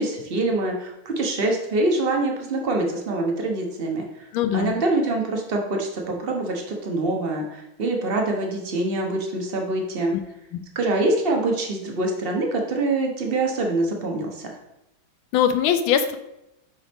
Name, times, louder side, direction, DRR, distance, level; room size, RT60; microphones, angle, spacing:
voice 1, 0.0-4.3 4.5-10.2 10.7-14.5, right 2 dB, 50° right, 1 dB, 0.7 m, -25 dB
voice 2, 4.3-4.8 10.1-10.2 15.3-16.2, left 9 dB, 75° left, 9 dB, 1.3 m, -21 dB
7.0 x 5.1 x 3.5 m, 0.87 s
omnidirectional pair, 2.3 m